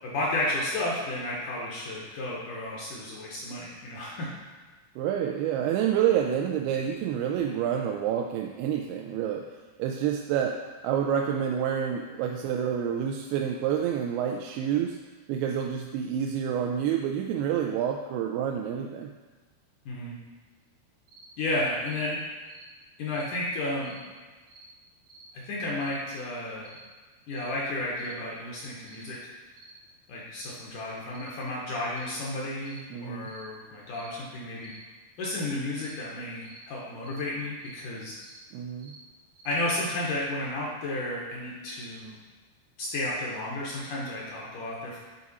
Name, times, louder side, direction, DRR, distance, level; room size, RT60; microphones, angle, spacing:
voice 1, 0.0-4.3 19.9-20.2 21.4-22.2 23.0-24.0 25.3-26.8 27.3-29.2 30.1-34.7 35.2-38.1 39.4-42.2 42.8-45.0, left 1 dB, 70° left, -4 dB, 2.1 m, -32 dB
voice 2, 5.0-9.5 9.8-10.6 10.8-15.0 15.3-19.1 32.9-33.3 38.5-38.9, right 9 dB, 85° right, 2 dB, 2.5 m, -28 dB
sound 1, 21.1-21.3 21.8-22.0 22.5-22.7 23.1-23.3 23.8-24.0 24.5-24.7 25.1-25.3 25.8-26.0 26.6-26.8 27.3-27.5 27.9-28.2 28.8-29.1 29.5-29.8 30.4-30.6 31.1-31.3 31.9-32.1 32.6-32.8 33.2-33.5 33.9-34.1 34.6-34.8 35.8-36.0 36.4-36.6 37.0-37.2 37.6-37.8 38.2-38.4 38.8-39.0 39.3-39.6, right 3 dB, 60° right, 1.0 m, -52 dB
8.5 x 4.8 x 4.1 m, 1.3 s
omnidirectional pair, 4.6 m